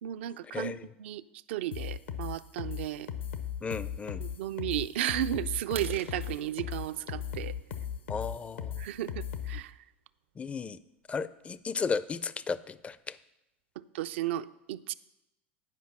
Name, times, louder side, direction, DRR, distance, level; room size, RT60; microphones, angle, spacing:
voice 1, 0.0-1.2 1.5-3.1 4.2-7.6 8.8-9.8 13.8-14.9, right 13 dB, 70° right, 13 dB, 0.4 m, -34 dB
voice 2, 0.5-0.9 3.6-4.2 8.1-8.8 10.4-10.8 11.1-13.2, left 5 dB, 20° left, 17 dB, 0.4 m, -34 dB
sound 1, 1.7-9.6, left 9 dB, 75° left, 0.9 m, -37 dB
sound 2, 5.6-9.4 9.9-10.1 10.6-10.7 11.1-11.3 11.6-11.7 12.1-12.2 12.5-13.0, right 7 dB, 85° right, 0.8 m, -47 dB
10.0 x 5.2 x 6.4 m, 0.90 s
hypercardioid pair, 90°, 7 cm